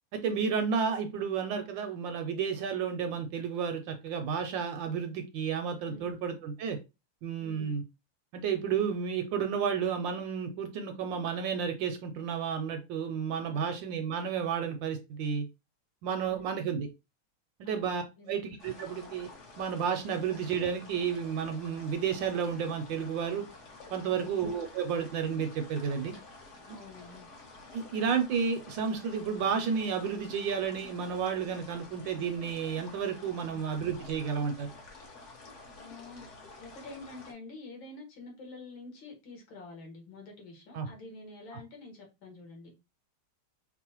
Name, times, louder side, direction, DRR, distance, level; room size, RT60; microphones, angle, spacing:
voice 1, 0.1-6.8 7.2-7.8 8.3-15.4 16.0-16.9 17.6-19.3 19.6-23.4 23.9-26.1 27.7-34.7 40.7-40.9, right 6 dB, 75° right, 7 dB, 1.2 m, -32 dB
voice 2, 5.9-6.2 7.4-7.8 13.4-13.8 16.1-16.6 17.7-18.5 24.1-24.3 26.7-27.3 33.5-33.6 35.8-36.3 36.6-42.8, left 2 dB, 70° left, 1 dB, 2.2 m, -48 dB
sound 1, 18.6-37.3, left 3 dB, 50° left, 1.0 m, -50 dB
5.4 x 2.1 x 2.9 m, 0.26 s
omnidirectional pair, 2.3 m